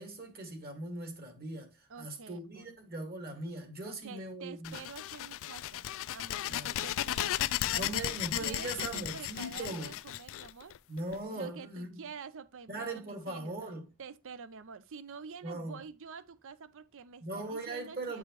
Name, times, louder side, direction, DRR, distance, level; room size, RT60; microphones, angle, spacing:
voice 1, 0.0-4.8 6.5-6.8 7.8-9.9 10.9-12.0 12.7-13.9 15.4-15.8 17.2-18.2, right 2 dB, 45° right, 2.0 m, -40 dB
voice 2, 1.9-2.7 3.8-8.0 8.4-10.7 11.3-13.6 14.0-18.2, right 6 dB, 60° right, 0.6 m, -48 dB
sound 1, 4.6-11.2, left 13 dB, 65° left, 0.3 m, -35 dB
9.1 x 4.8 x 3.1 m
head